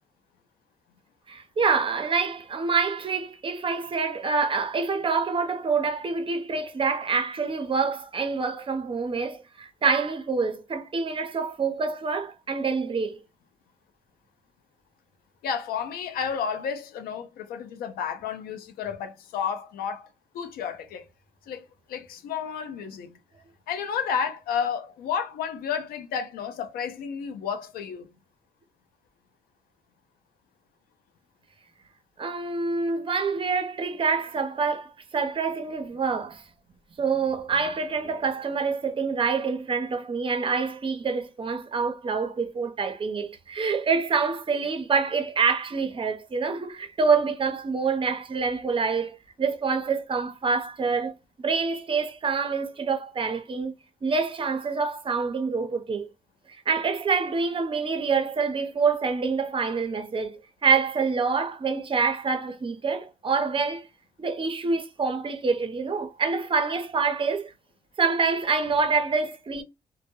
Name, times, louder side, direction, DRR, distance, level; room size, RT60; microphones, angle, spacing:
voice 1, 1.3-13.2 32.2-36.4 37.0-53.8 54.0-56.1 56.5-63.9 64.2-67.5 68.0-69.6, right 5 dB, 35° right, 0.6 m, -26 dB
voice 2, 15.4-20.1 20.3-21.1 21.5-23.2 23.7-28.1, left 7 dB, 85° left, 0.5 m, -31 dB
2.1 x 2.0 x 2.8 m
cardioid pair, 75°, 15 cm